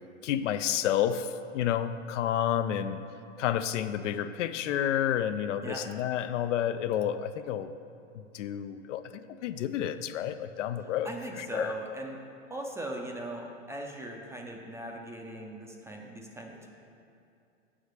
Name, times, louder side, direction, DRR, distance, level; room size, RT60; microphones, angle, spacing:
voice 1, 0.2-3.0 3.4-7.7 8.3-9.0 9.4-11.1 11.4-11.7, left 10 dB, 70° left, 11 dB, 0.5 m, -30 dB
voice 2, 11.0-12.2 12.5-16.7, right 1 dB, 5° right, 1 dB, 0.5 m, -39 dB
7.1 x 5.0 x 6.5 m, 2.5 s
hypercardioid pair, 120°, 38 cm